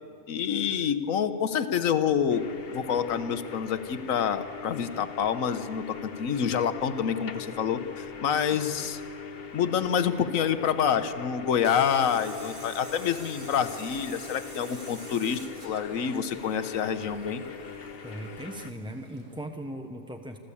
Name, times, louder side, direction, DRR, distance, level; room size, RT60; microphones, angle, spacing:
voice 1, 0.3-9.0 9.5-17.4, left 8 dB, 75° left, 11 dB, 1.3 m, -27 dB
sound 1, 2.3-18.7, left 6 dB, 45° left, 1.1 m, -42 dB
Tools, 11.6-19.4, right 2 dB, 40° right, 2.0 m, -48 dB
voice 2, 18.0-20.4, right 1 dB, 5° right, 4 dB, 0.5 m, -38 dB
26.0 x 14.5 x 8.5 m, 2.9 s
omnidirectional pair, 1.4 m